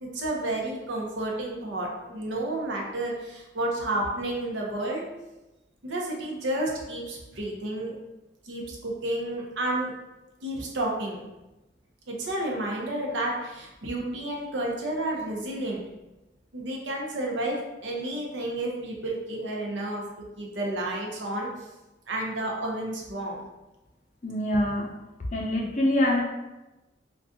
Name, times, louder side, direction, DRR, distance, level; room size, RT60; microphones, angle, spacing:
voice 1, 0.0-5.0 5.8-8.0 8.4-9.9 10.4-11.2 12.1-15.8 16.5-21.7 22.1-23.4, right 1 dB, 85° right, -1 dB, 0.7 m, -31 dB
voice 2, 24.2-24.9 25.3-26.2, left 1 dB, 40° left, -1 dB, 0.5 m, -25 dB
2.6 x 2.3 x 3.6 m, 1.0 s
head